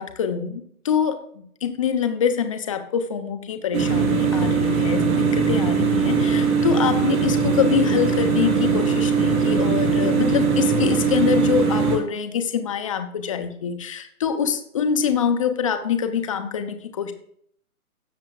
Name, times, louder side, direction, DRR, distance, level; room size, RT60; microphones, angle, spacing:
voice 1, 0.0-17.1, left 7 dB, 20° left, 7 dB, 0.7 m, -25 dB
sound 1, 3.7-12.0, right 5 dB, 65° right, 3.2 m, -20 dB
17.0 x 7.5 x 2.3 m, 0.65 s
hypercardioid pair, 150°, 45 cm